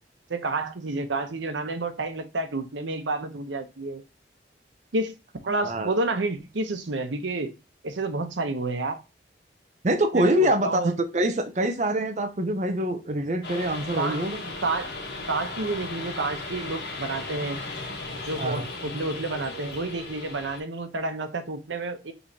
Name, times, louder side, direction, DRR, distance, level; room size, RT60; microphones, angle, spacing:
voice 1, 0.3-4.0 4.9-5.1 5.5-7.5 7.8-9.0 10.1-11.0 13.9-14.2 14.6-14.9 15.3-17.6 18.3-22.1, right 2 dB, 90° right, 0.8 m, -29 dB
voice 2, 5.6-5.9 9.8-14.4 18.4-18.7, right 1 dB, 40° right, 0.5 m, -25 dB
sound 1, 13.4-20.6, left 3 dB, 65° left, 1.4 m, -36 dB
5.5 x 3.1 x 2.7 m
head